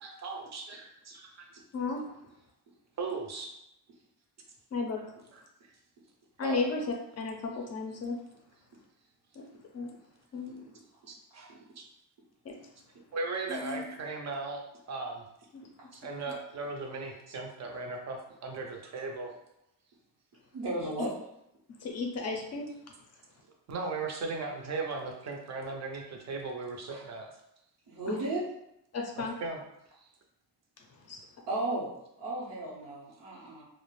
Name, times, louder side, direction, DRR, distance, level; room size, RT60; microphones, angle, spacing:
voice 1, 0.0-1.5 3.0-3.5 6.4-6.6 11.1-11.8 13.1-15.2 15.9-19.3 23.7-27.3 29.2-29.6, right 3 dB, 40° right, 2 dB, 0.5 m, -37 dB
voice 2, 1.7-2.0 4.7-5.0 6.4-8.2 9.3-9.4 9.7-9.9 10.3-10.6 12.4-12.6 13.5-13.8 21.0-21.1 21.8-22.7 28.1-28.2 28.9-29.3 30.8-31.2, left 4 dB, 40° left, 1 dB, 0.4 m, -34 dB
voice 3, 20.5-21.1 27.9-28.4 31.5-31.9 32.2-33.6, right 1 dB, 80° right, -8 dB, 0.8 m, -34 dB
2.3 x 2.0 x 3.0 m, 0.83 s
cardioid pair, 130°, 41 cm